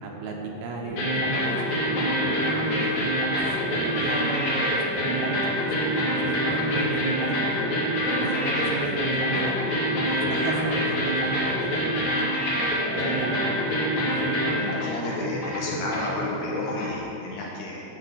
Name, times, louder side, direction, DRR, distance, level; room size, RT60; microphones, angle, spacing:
voice 1, 0.0-3.4 3.7-7.6 8.1-12.3 12.8-13.7 14.1-14.4, right 3 dB, 75° right, 0 dB, 2.7 m, -35 dB
sound 1, 0.8-17.0, equal, 50° left, 3.2 m, -26 dB
voice 2, 8.6-8.9 12.9-13.2 14.6-17.8, left 2 dB, 70° left, -3 dB, 2.3 m, -33 dB
11.0 x 4.0 x 7.8 m, 3.0 s
omnidirectional pair, 4.8 m